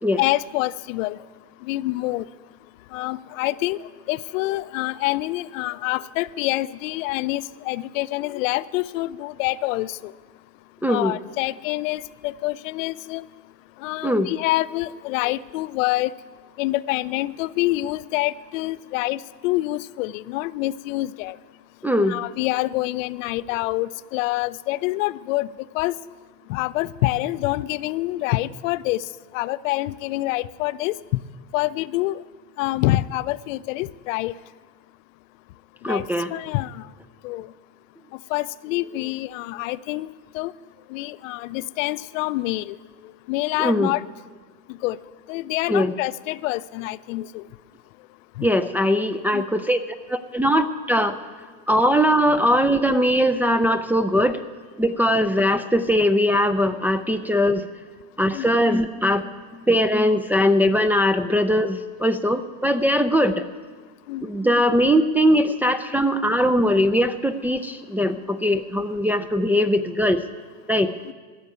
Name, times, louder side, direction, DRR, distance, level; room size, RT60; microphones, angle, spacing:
voice 1, 0.2-1.2 1.7-2.2 2.9-3.8 4.1-10.1 10.9-13.3 13.8-16.1 16.6-21.4 22.1-25.5 25.7-25.9 26.5-29.0 29.3-30.9 31.5-32.2 32.6-34.3 35.9-36.0 36.3-36.8 37.2-37.5 38.3-40.1 40.3-40.5 40.9-42.8 43.3-44.0 44.8-45.0 45.3-47.4 48.4-48.6 49.3-49.4 58.3-58.5 64.1-64.2 71.1-71.2, left 18 dB, 75° left, 16 dB, 0.5 m, -26 dB
voice 2, 10.8-11.1 14.0-14.3 21.8-22.2 35.8-36.3 43.6-43.9 45.7-45.9 48.4-51.2 51.7-54.4 54.8-57.6 58.2-59.3 59.7-63.5 64.2-70.2 70.7-70.9, equal, 5° right, 5 dB, 0.4 m, -20 dB
14.5 x 6.6 x 9.4 m, 1.5 s
supercardioid pair, 105°, 40 cm